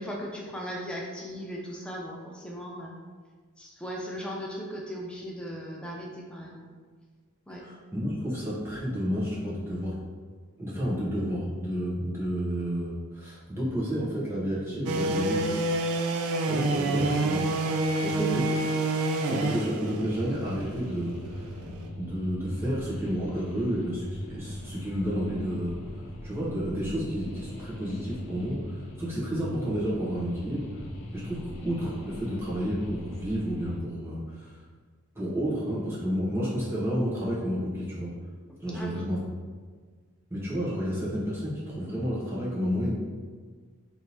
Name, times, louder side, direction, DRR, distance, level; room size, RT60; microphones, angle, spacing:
voice 1, 0.0-2.9 3.6-6.6 7.5-7.6 17.1-17.2 38.5-39.0, equal, 5° left, -2 dB, 0.4 m, -38 dB
voice 2, 7.6-9.9 10.6-15.5 16.5-17.5 18.0-18.6 19.3-21.5 22.0-25.8 26.2-30.7 31.1-34.5 35.1-38.1 38.6-39.2 40.3-42.9, equal, 10° right, -8 dB, 0.9 m, -31 dB
sound 1, 14.9-21.9, right 2 dB, 85° right, 0.3 m, -28 dB
sound 2, 20.1-33.8, left 1 dB, 55° left, 0.5 m, -40 dB
3.5 x 2.6 x 2.9 m, 1.6 s
head